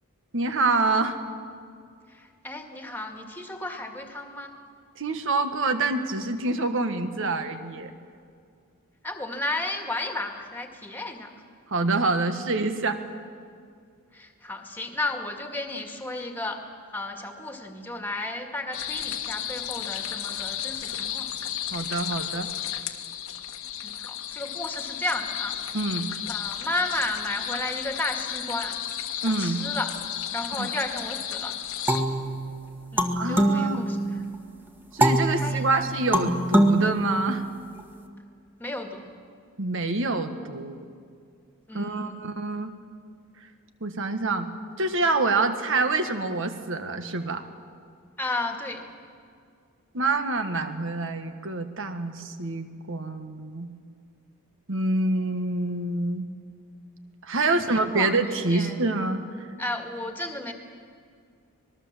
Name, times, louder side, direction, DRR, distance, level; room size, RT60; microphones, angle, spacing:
voice 1, 0.3-1.2 5.0-7.9 11.7-13.0 21.7-22.5 25.7-26.1 29.2-29.6 30.5-30.7 33.1-33.9 34.9-37.4 39.6-40.8 41.7-42.7 43.8-44.5 44.8-47.4 49.9-53.7 54.7-56.3 57.2-59.2, right 3 dB, 60° right, 8 dB, 1.6 m, -26 dB
voice 2, 2.1-4.5 9.0-11.3 14.1-16.6 16.9-21.3 23.8-25.6 26.3-28.8 29.2-30.0 30.3-31.6 32.9-34.2 35.4-36.0 38.6-39.1 41.7-42.2 48.2-48.9 57.4-58.8 59.6-60.5, left 2 dB, 10° left, 4 dB, 2.0 m, -33 dB
sound 1, 18.7-32.0, left 10 dB, 70° left, 1.4 m, -33 dB
sound 2, 31.9-34.4 35.0-37.8, right 1 dB, 10° right, 1.5 m, -24 dB
25.0 x 20.5 x 7.5 m, 2.2 s
head